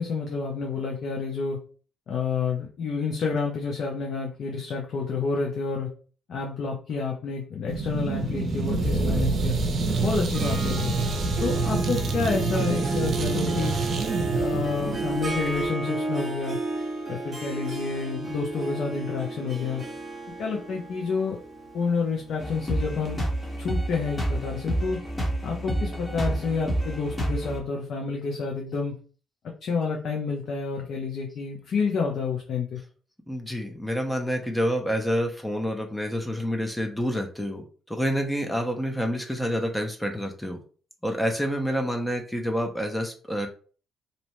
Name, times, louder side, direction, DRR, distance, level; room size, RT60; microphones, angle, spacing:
voice 1, 0.0-1.6 2.1-5.9 6.3-9.6 10.0-10.9 11.4-13.8 14.3-16.6 17.1-19.8 20.4-21.4 21.7-23.2 23.6-25.0 25.4-29.0 29.6-32.8, left 5 dB, 65° left, 0 dB, 0.5 m, -29 dB
sound 1, 7.7-15.7, right 3 dB, 60° right, 0.5 m, -27 dB
Harp, 10.3-23.9, right 3 dB, 30° right, 0.8 m, -33 dB
sound 2, 22.4-27.6, right 1 dB, 25° left, 0.9 m, -29 dB
voice 2, 33.3-40.6 41.0-43.5, equal, 5° left, 4 dB, 0.5 m, -28 dB
2.7 x 2.1 x 3.0 m, 0.40 s
cardioid pair, 90°, 0 cm